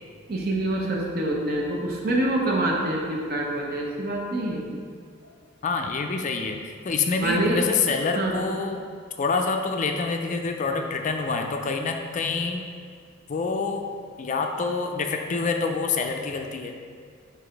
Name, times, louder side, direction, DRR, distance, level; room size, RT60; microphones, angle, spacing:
voice 1, 0.3-4.6 7.1-7.6 8.1-8.4, right 1 dB, 50° right, -1 dB, 0.9 m, -26 dB
voice 2, 5.6-6.6 6.8-8.8 9.2-12.6 13.3-13.8 14.2-16.7, left 4 dB, 35° left, 4 dB, 0.4 m, -26 dB
4.8 x 4.0 x 5.1 m, 2.2 s
head